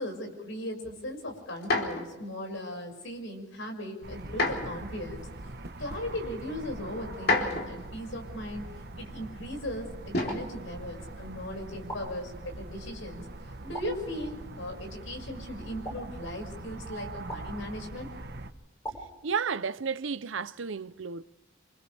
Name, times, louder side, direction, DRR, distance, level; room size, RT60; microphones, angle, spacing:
voice 1, 0.0-5.3 5.8-8.7 9.0-18.1 18.9-19.0, left 1 dB, 75° left, 6.1 m, -38 dB
sound 1, 1.6-2.1 4.3-4.8 5.8-5.9 7.1-7.9 10.1-10.5 11.7-12.1, left 2 dB, 55° left, 3.5 m, -29 dB
sound 2, 4.0-18.5, right 2 dB, 55° right, 1.2 m, -43 dB
sound 3, 10.3-11.2 11.9-12.8 13.7-14.6 15.8-16.7 17.3-18.1 18.8-19.8, right 1 dB, 20° left, 7.5 m, -44 dB
voice 2, 19.2-21.2, right 5 dB, 70° right, 0.7 m, -32 dB
28.0 x 27.0 x 3.4 m
head